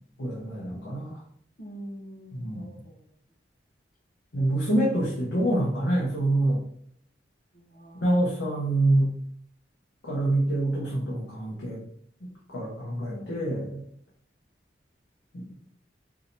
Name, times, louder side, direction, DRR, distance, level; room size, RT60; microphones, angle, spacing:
voice 1, 0.2-1.2 2.3-2.8 4.3-6.6 7.9-9.1 10.0-11.8 12.5-13.8 15.3-15.5, right 1 dB, 85° left, -6 dB, 1.2 m, -26 dB
voice 2, 1.6-3.1 7.5-8.1 13.1-13.6, right 1 dB, 45° left, 2 dB, 0.8 m, -44 dB
4.9 x 2.8 x 2.6 m, 0.64 s
head